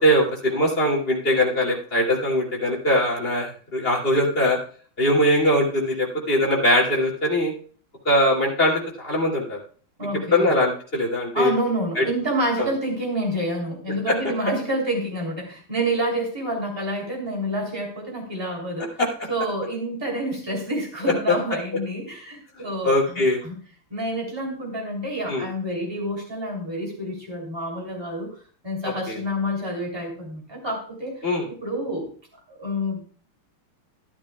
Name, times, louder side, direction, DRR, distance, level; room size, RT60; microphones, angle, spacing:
voice 1, 0.0-4.6 5.0-7.5 8.0-9.6 10.3-11.5 11.9-12.0 12.6-12.7 14.1-14.2 19.0-19.1 21.0-21.1 22.8-23.4 25.3-25.4 28.8-29.2 31.2-31.5, left 1 dB, 25° left, -3 dB, 2.9 m, -21 dB
voice 2, 10.0-10.5 11.3-19.0 19.3-23.6 23.9-31.2 31.6-32.1 32.5-33.0, right 1 dB, 10° right, -1 dB, 3.0 m, -28 dB
12.5 x 12.0 x 2.3 m, 0.43 s
omnidirectional pair, 2.3 m